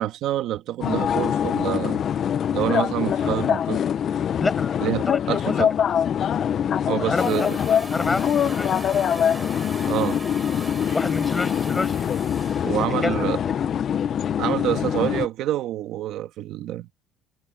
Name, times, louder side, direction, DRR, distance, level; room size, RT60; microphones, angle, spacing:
voice 1, 0.0-2.0 2.5-3.8 4.8-5.7 6.9-7.6 9.9-10.2 12.6-13.4 14.4-16.9, right 13 dB, 65° right, 1.7 m, -27 dB
sound 1, 0.8-15.3, left 9 dB, 40° left, 0.4 m, -24 dB
voice 2, 4.4-5.6 6.9-7.5 7.9-8.8 10.9-12.1 13.0-13.7, left 3 dB, 15° left, 7.9 m, -29 dB
sound 2, 7.2-12.9, right 3 dB, 15° right, 3.3 m, -39 dB
cardioid pair, 145°, 0 cm